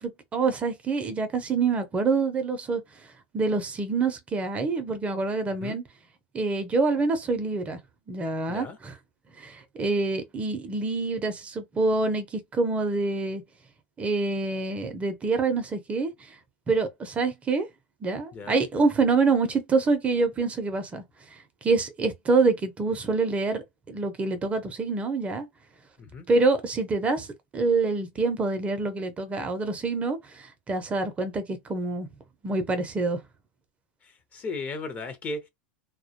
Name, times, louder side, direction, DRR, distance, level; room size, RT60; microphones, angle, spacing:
voice 1, 0.0-2.8 3.3-5.8 6.3-7.8 8.1-8.9 9.4-13.4 14.0-16.4 16.7-17.7 18.0-21.0 21.6-25.5 26.3-27.3 27.5-32.1 32.4-33.2, right 3 dB, 25° right, 0.5 m, -26 dB
voice 2, 8.5-8.8 18.3-18.6 26.0-26.3 34.0-35.4, left 3 dB, 30° left, 0.6 m, -36 dB
2.1 x 2.1 x 2.8 m
supercardioid pair, 110°, 5 cm